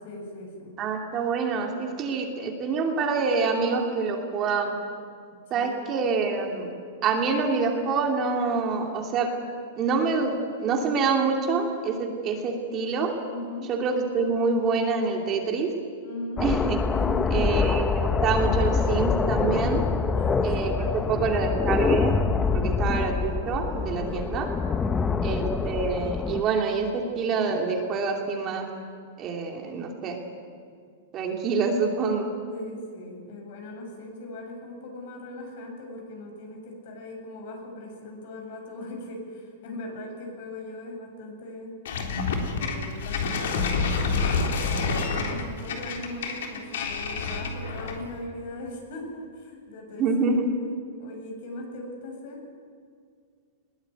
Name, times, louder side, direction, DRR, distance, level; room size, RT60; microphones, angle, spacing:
voice 1, 0.0-0.7 5.5-5.9 13.3-13.7 16.0-16.5 16.9-17.5 20.0-21.4 22.5-22.8 24.0-24.3 24.8-25.2 31.5-31.6 32.5-41.8 42.5-50.4 51.0-52.4, left 2 dB, 55° left, 2 dB, 7.8 m, -39 dB
voice 2, 0.8-4.7 5.5-6.7 7.0-9.3 9.8-13.1 13.7-15.7 16.4-16.8 17.3-19.8 20.4-22.2 22.5-24.5 25.2-28.7 29.2-30.2 31.1-32.3 50.0-50.5, right 4 dB, 25° right, 1 dB, 2.7 m, -26 dB
sound 1, 16.4-26.4, left 5 dB, 15° left, 0.7 m, -25 dB
sound 2, 41.8-48.1, left 4 dB, 75° left, 3.7 m, -28 dB
21.0 x 19.5 x 9.3 m, 2.1 s
supercardioid pair, 155°, 0 cm